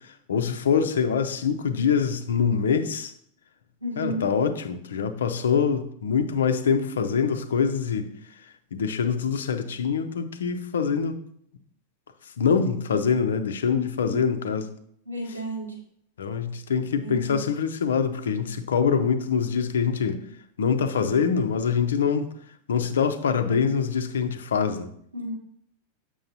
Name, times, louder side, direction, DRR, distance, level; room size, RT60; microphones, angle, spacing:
voice 1, 0.3-3.1 4.0-8.1 8.7-11.2 12.4-14.7 16.2-20.2 20.6-22.3 22.7-24.9, left 6 dB, 65° left, 8 dB, 0.7 m, -24 dB
voice 2, 3.8-4.3 13.7-14.2 15.1-15.8 16.9-17.4 25.1-25.3, right 1 dB, 80° right, -1 dB, 1.9 m, -33 dB
7.8 x 6.3 x 2.8 m, 0.65 s
figure-of-eight pair, 90°, 0 cm